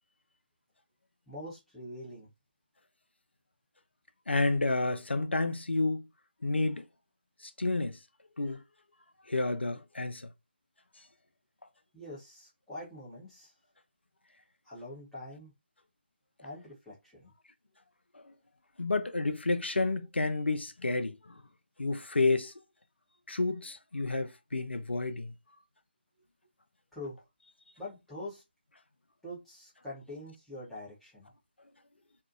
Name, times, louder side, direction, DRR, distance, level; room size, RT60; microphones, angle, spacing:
voice 1, 1.3-2.3 11.9-13.5 14.6-15.5 16.4-17.3 26.9-27.2 27.8-28.4 29.2-31.3, left 1 dB, 5° left, 0.9 m, -44 dB
voice 2, 4.3-6.1 6.4-6.9 7.4-8.0 8.4-8.6 9.3-10.3 18.2-18.3 18.8-21.2 21.8-22.5 23.3-25.3, left 3 dB, 80° left, 0.5 m, -30 dB
2.6 x 2.3 x 2.5 m
figure-of-eight pair, 150°, 6 cm